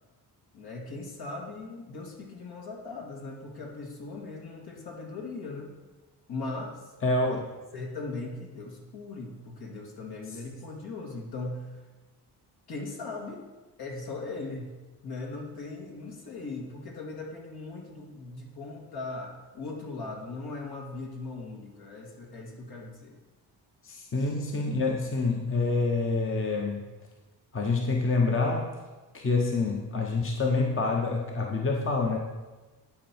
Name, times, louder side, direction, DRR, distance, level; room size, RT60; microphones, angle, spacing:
voice 1, 0.5-5.8 6.3-6.9 7.3-7.4 7.7-11.8 12.7-13.5 13.8-14.7 15.0-23.2 24.2-24.3, left 3 dB, 65° left, -1 dB, 2.0 m, -39 dB
voice 2, 7.0-7.4 23.8-26.8 27.5-28.8 29.1-32.2, left 3 dB, 30° left, 1 dB, 1.0 m, -27 dB
11.0 x 4.7 x 4.5 m, 1.2 s
cardioid pair, 80°, 41 cm